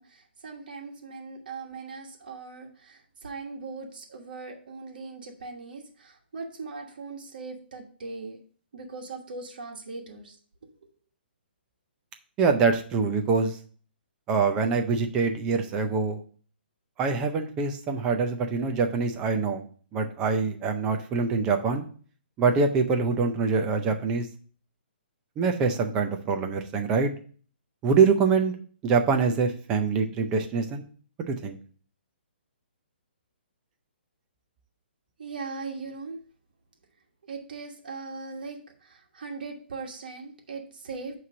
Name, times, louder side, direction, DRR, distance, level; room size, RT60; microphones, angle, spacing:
voice 1, 0.0-8.4 8.7-10.3 35.2-36.2 37.3-41.1, right 4 dB, 55° right, 1 dB, 1.4 m, -39 dB
voice 2, 12.4-13.5 14.3-16.2 17.0-19.6 19.9-21.8 22.4-24.3 25.4-27.1 27.8-28.5 28.8-30.9 31.3-31.6, right 5 dB, 10° right, 5 dB, 0.4 m, -24 dB
8.4 x 3.1 x 6.0 m, 0.43 s
hypercardioid pair, 180°, 6 cm